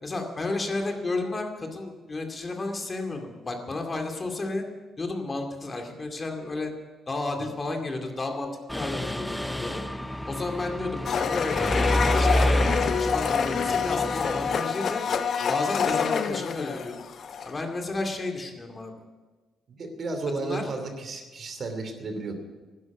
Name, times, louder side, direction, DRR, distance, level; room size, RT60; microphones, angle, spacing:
voice 1, 0.0-4.6 5.0-6.7 7.1-9.8 10.3-15.0 15.5-16.9 17.4-18.9 20.4-20.6, left 2 dB, 30° left, 4 dB, 2.4 m, -32 dB
Mechanisms, 8.7-14.6, equal, 5° left, 0.7 m, -28 dB
Domestic sounds home sounds, 11.0-17.6, left 6 dB, 55° left, 1.0 m, -27 dB
voice 2, 19.7-22.3, right 3 dB, 50° right, 6 dB, 2.7 m, -33 dB
12.5 x 10.5 x 9.1 m, 1.3 s
cardioid pair, 90°, 0 cm